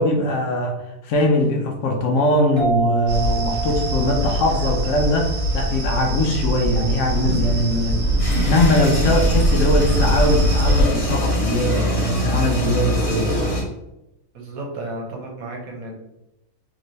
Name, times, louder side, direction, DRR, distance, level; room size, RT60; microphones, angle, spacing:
voice 1, 0.0-8.2 8.5-13.5, left 1 dB, 70° left, 2 dB, 0.8 m, -21 dB
sound 1, 2.6-5.9, right 4 dB, 40° right, 0.7 m, -29 dB
sound 2, 3.1-10.8, equal, 60° right, 1.2 m, -22 dB
sound 3, 8.2-13.6, equal, 30° left, 0.9 m, -24 dB
voice 2, 14.3-15.9, right 2 dB, 80° right, 0 dB, 1.3 m, -33 dB
3.1 x 2.9 x 2.7 m, 0.91 s
omnidirectional pair, 1.5 m